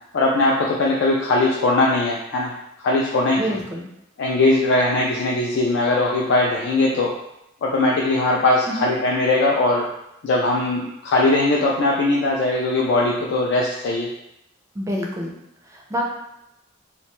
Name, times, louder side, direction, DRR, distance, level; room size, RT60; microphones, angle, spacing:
voice 1, 0.1-2.5 2.8-3.4 4.2-7.1 7.6-9.9 10.2-14.1, left 2 dB, 65° left, -2 dB, 0.3 m, -20 dB
voice 2, 3.4-3.9 8.7-8.9 14.7-15.3 15.7-16.0, equal, 15° right, -1 dB, 0.4 m, -27 dB
2.6 x 2.1 x 2.9 m, 0.84 s
head